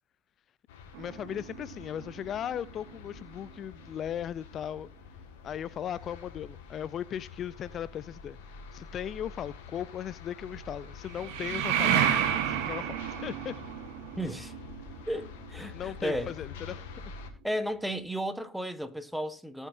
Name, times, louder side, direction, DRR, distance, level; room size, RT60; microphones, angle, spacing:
sound 1, 0.7-17.3, left 5 dB, 80° left, 2.1 m, -47 dB
sound 2, 0.9-3.6 11.0-16.7, right 9 dB, 75° right, 1.5 m, -32 dB
voice 1, 1.0-4.9 5.4-8.4 8.7-12.1 12.5-12.9 13.2-13.5 15.7-16.8, left 9 dB, 50° left, 0.5 m, -37 dB
voice 2, 14.2-14.5 15.1-16.4 17.4-19.7, equal, 5° right, 1.5 m, -34 dB
18.5 x 7.2 x 2.7 m
hypercardioid pair, 65°, 0 cm